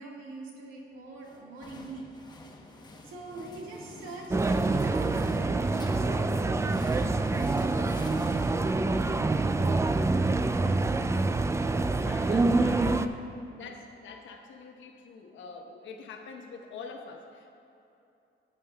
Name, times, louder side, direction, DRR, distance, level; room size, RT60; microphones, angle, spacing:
voice 1, 0.0-2.0 3.0-7.6 10.6-11.3 12.9-13.3 13.5-13.7, right 3 dB, 90° right, -2 dB, 1.7 m, -44 dB
sound 1, 1.2-9.2, left 2 dB, 20° left, 0.9 m, -47 dB
sound 2, 4.3-13.1, right 3 dB, 15° right, 0.3 m, -26 dB
voice 2, 12.0-13.1 13.6-17.5, left 4 dB, 75° left, 2 dB, 1.1 m, -45 dB
14.5 x 8.9 x 2.3 m, 2.8 s
cardioid pair, 90°, 20 cm